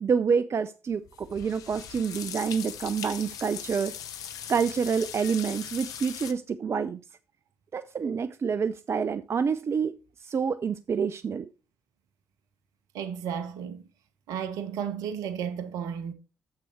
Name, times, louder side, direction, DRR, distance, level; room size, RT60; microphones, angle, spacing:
voice 1, 0.0-3.9 4.5-7.0 7.7-10.0 10.2-11.5, right 6 dB, 45° right, 0.6 m, -27 dB
sound 1, 0.9-6.3, left 9 dB, 65° left, 1.0 m, -39 dB
voice 2, 12.9-13.9 14.3-16.1, right 8 dB, 70° right, 1.2 m, -33 dB
9.6 x 7.7 x 4.2 m
hypercardioid pair, 40°, 7 cm